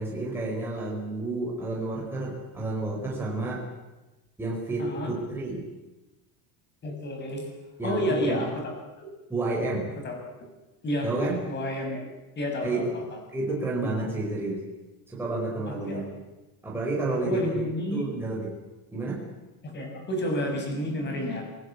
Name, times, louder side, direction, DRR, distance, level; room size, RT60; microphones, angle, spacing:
voice 1, 0.0-3.6 4.4-5.7 7.8-8.4 9.3-9.9 11.0-11.4 12.6-12.9 13.3-14.6 15.1-16.1 16.6-17.6 17.9-18.5 18.9-19.2, right 2 dB, 5° right, -4 dB, 4.9 m, -30 dB
voice 2, 4.8-5.1 6.8-7.5 7.8-9.1 10.0-10.5 10.8-11.1 11.5-12.1 12.4-13.0 15.7-16.0 17.1-18.1 19.6-21.4, left 1 dB, 25° left, 3 dB, 6.6 m, -30 dB
27.0 x 20.0 x 8.5 m, 1.1 s
cardioid pair, 170°, 43 cm